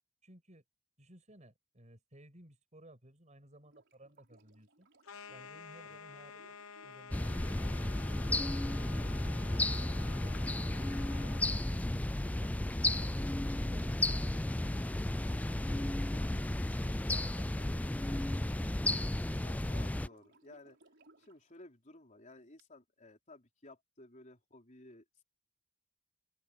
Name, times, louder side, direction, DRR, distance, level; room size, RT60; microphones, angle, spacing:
voice 1, 0.2-0.6 1.0-4.9 5.3-6.5 6.8-9.3 9.7-12.0 12.3-14.8 16.1-16.5 17.1-18.6, right 1 dB, 35° right, 7.8 m, -58 dB
Sink (filling or washing), 3.6-21.4 22.6-22.7, right 2 dB, 60° right, 5.0 m, -65 dB
sound 1, 5.0-11.6, left 5 dB, 80° left, 0.9 m, -51 dB
sound 2, 7.1-20.1, left 1 dB, 5° left, 0.3 m, -33 dB
voice 2, 19.4-20.8 21.2-25.0, left 2 dB, 35° left, 4.2 m, -55 dB
open air
head